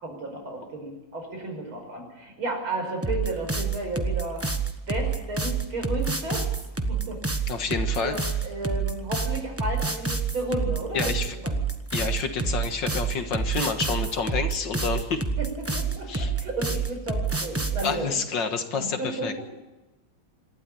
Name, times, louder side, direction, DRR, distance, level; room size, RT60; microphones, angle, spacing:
voice 1, 0.0-4.4 4.9-6.5 6.9-7.2 8.0-11.6 15.4-18.2 18.8-19.3, right 2 dB, 80° right, 2 dB, 6.3 m, -33 dB
sound 1, 3.0-17.9, right 4 dB, 10° right, 1.0 m, -27 dB
voice 2, 7.5-8.4 10.9-11.4 11.9-15.2 16.1-16.3 17.8-19.3, left 5 dB, 65° left, 7 dB, 2.1 m, -29 dB
27.0 x 12.5 x 8.8 m, 1.0 s
omnidirectional pair, 2.2 m